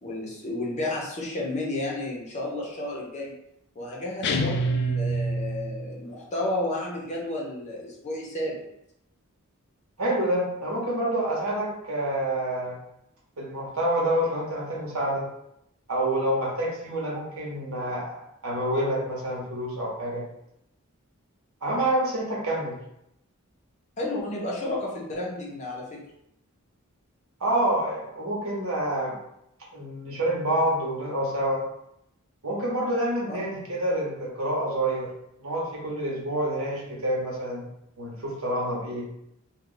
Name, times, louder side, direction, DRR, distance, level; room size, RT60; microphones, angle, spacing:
voice 1, 0.0-3.3 3.7-8.6 24.0-26.0 33.3-33.4, left 1 dB, 35° left, -3 dB, 0.8 m, -32 dB
sound 1, 4.2-5.9, right 1 dB, 55° left, 0.3 m, -26 dB
voice 2, 10.0-12.8 13.4-15.3 15.9-20.2 21.6-22.8 27.4-29.2 29.7-31.6 32.4-35.1 35.4-37.6 38.0-39.1, right 1 dB, 75° right, -4 dB, 1.0 m, -27 dB
2.3 x 2.3 x 3.8 m, 0.80 s
head